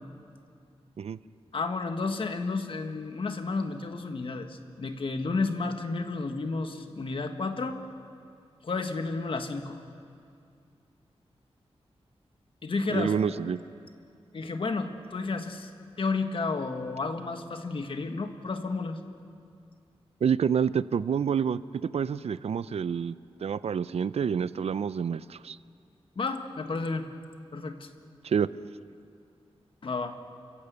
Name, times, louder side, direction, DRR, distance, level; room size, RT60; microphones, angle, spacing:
voice 1, 1.5-7.8 8.6-9.8 12.6-13.1 14.3-15.7 16.0-19.0 26.1-27.1 27.5-27.9 29.8-30.2, left 3 dB, 55° left, 6 dB, 1.6 m, -31 dB
voice 2, 12.9-13.6 20.2-23.2 23.4-25.6 28.2-28.5, right 7 dB, 75° right, 16 dB, 0.5 m, -28 dB
29.0 x 15.5 x 8.3 m, 2.4 s
wide cardioid pair, 135°, 11 cm